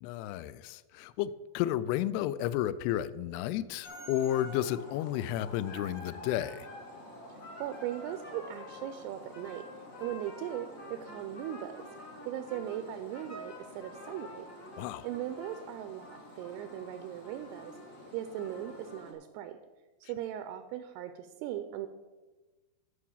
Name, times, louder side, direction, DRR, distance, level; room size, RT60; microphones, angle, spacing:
voice 1, 0.0-6.7 14.8-15.1, left 12 dB, 90° left, 16 dB, 2.3 m, -32 dB
sound 1, 3.8-19.1, left 1 dB, 70° left, 0.7 m, -47 dB
voice 2, 7.3-9.6 10.0-11.8 12.3-14.5 15.0-17.7 18.1-19.6 20.0-21.9, right 11 dB, 85° right, 9 dB, 2.4 m, -39 dB
13.0 x 4.8 x 7.2 m, 1.2 s
omnidirectional pair, 5.2 m